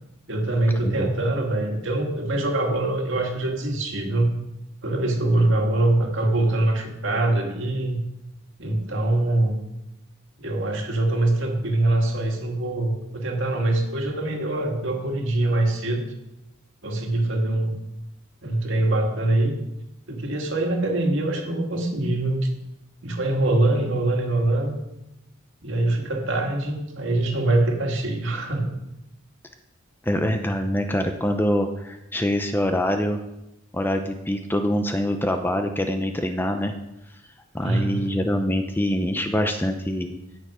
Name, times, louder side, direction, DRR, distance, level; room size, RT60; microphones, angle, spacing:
voice 1, 0.3-4.4 4.8-8.0 8.6-9.6 10.4-16.1 16.8-17.8 18.4-19.5 20.1-22.5 23.0-24.8 25.6-28.7 37.6-38.1, right 2 dB, 60° right, 1 dB, 2.3 m, -23 dB
voice 2, 30.0-33.2 33.7-36.7 37.5-40.1, left 1 dB, 10° left, 6 dB, 0.6 m, -24 dB
17.0 x 6.8 x 5.0 m, 0.90 s
head